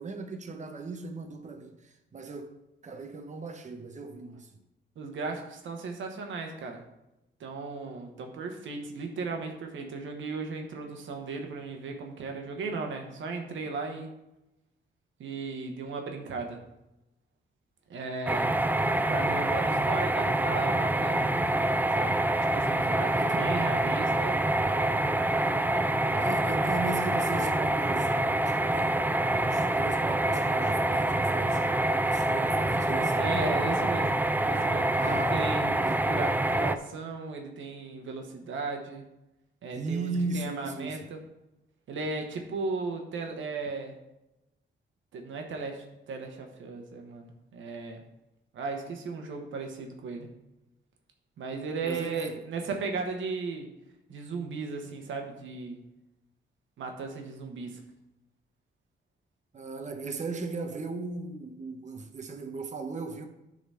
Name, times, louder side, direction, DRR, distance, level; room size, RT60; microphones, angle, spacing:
voice 1, 0.0-2.5 2.8-4.5 22.8-23.6 26.2-31.6 32.0-33.7 35.0-36.0 39.7-41.0 51.8-52.4 59.5-63.3, right 3 dB, 40° right, 0.9 m, -37 dB
voice 2, 5.0-6.8 7.4-14.1 15.2-16.6 17.9-18.5 19.1-21.3 21.9-22.2 22.5-24.4 26.1-26.5 33.1-39.0 39.6-40.1 40.3-41.2 41.9-44.0 45.1-48.0 48.5-50.3 51.4-53.7 54.1-55.8 56.8-57.8, right 4 dB, 90° right, 1.0 m, -36 dB
sound 1, 18.3-36.8, right 1 dB, 10° right, 0.4 m, -26 dB
9.0 x 3.9 x 5.6 m
cardioid pair, 80°, 19 cm